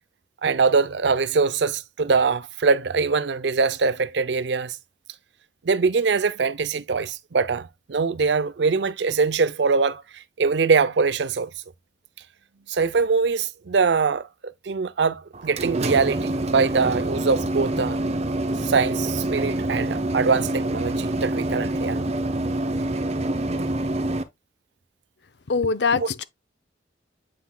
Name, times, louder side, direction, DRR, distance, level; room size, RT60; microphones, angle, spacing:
voice 1, 0.4-4.8 5.6-10.0 10.4-11.5 12.7-14.3 14.6-18.0 18.6-22.0 26.0-26.1, right 4 dB, 75° right, 0.5 m, -23 dB
sound 1, 15.3-24.2, right 1 dB, 35° right, 0.8 m, -26 dB
voice 2, 25.5-26.2, left 4 dB, 70° left, 0.6 m, -22 dB
8.3 x 5.8 x 2.2 m
head